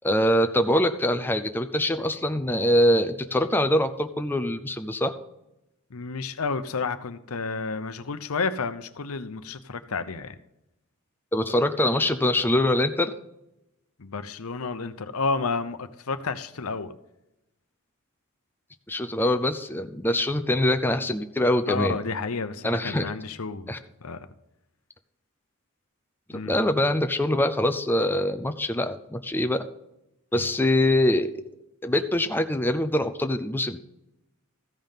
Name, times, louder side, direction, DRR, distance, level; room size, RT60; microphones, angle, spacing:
voice 1, 0.0-5.1 11.3-13.1 18.9-22.0 22.6-23.0 23.7-23.8 26.5-29.6 30.3-31.3 31.8-33.8, left 1 dB, 10° left, 0.5 m, -24 dB
voice 2, 5.9-10.3 14.0-16.9 21.7-23.7 24.0-24.3 26.3-26.6 30.3-30.5, left 4 dB, 75° left, 0.8 m, -31 dB
14.5 x 5.3 x 5.7 m
head